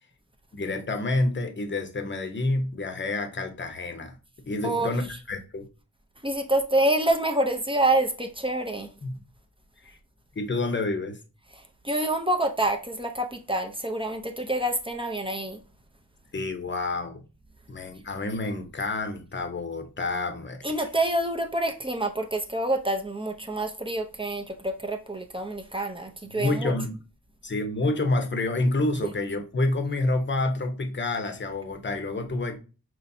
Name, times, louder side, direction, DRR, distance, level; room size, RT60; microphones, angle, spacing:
voice 1, 0.5-4.2 4.5-5.7 9.0-9.2 9.8-10.0 10.4-11.2 16.3-17.2 17.7-20.6 26.3-27.0 27.4-32.6, left 2 dB, 30° left, 0.8 m, -28 dB
voice 2, 6.2-8.9 11.5-15.6 20.6-26.7, right 1 dB, 15° right, 0.6 m, -27 dB
5.4 x 3.0 x 2.7 m
wide cardioid pair, 90°, 36 cm